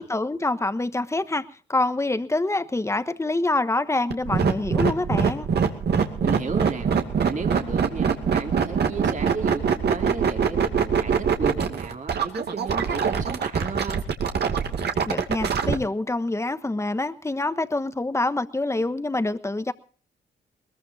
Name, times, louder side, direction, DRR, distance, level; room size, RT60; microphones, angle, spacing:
voice 1, 0.0-5.5 15.1-19.7, left 2 dB, 15° left, 1.2 m, -26 dB
sound 1, 4.1-15.7, right 6 dB, 60° right, 2.4 m, -23 dB
voice 2, 6.2-6.9 7.2-14.0, right 4 dB, 40° right, 2.8 m, -33 dB
21.5 x 21.0 x 2.7 m
cardioid pair, 95°, 19 cm